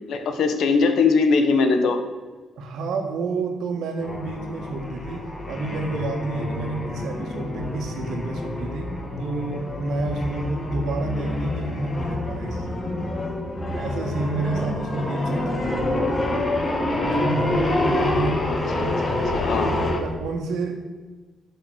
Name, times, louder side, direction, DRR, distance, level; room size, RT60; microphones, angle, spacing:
voice 1, 0.0-2.0 18.8-19.7, left 4 dB, 70° left, 6 dB, 1.3 m, -21 dB
voice 2, 2.6-13.1 13.8-16.3 17.0-19.1 19.6-20.8, right 2 dB, 80° right, 3 dB, 1.9 m, -29 dB
sound 1, 4.0-20.0, left 2 dB, 25° left, 1.6 m, -27 dB
11.5 x 6.4 x 6.5 m, 1.3 s
cardioid pair, 135°, 0 cm